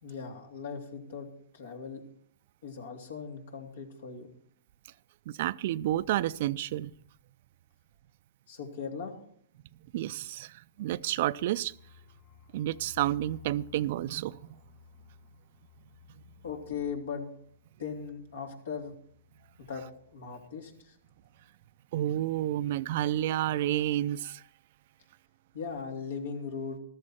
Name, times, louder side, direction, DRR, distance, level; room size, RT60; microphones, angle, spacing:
voice 1, 0.0-1.3 1.5-2.0 2.6-4.3 8.5-9.2 16.4-17.3 17.8-18.9 19.6-19.8 20.1-21.0 25.5-26.8, left 6 dB, 75° left, 3.0 m, -38 dB
voice 2, 5.4-6.9 9.9-11.7 12.5-14.4 21.9-24.4, right 13 dB, 55° right, 0.4 m, -30 dB
sound 1, 10.7-20.4 20.7-20.8 21.1-21.5, left 8 dB, 55° left, 2.5 m, -57 dB
14.0 x 13.0 x 4.4 m
hypercardioid pair, 130°, 0 cm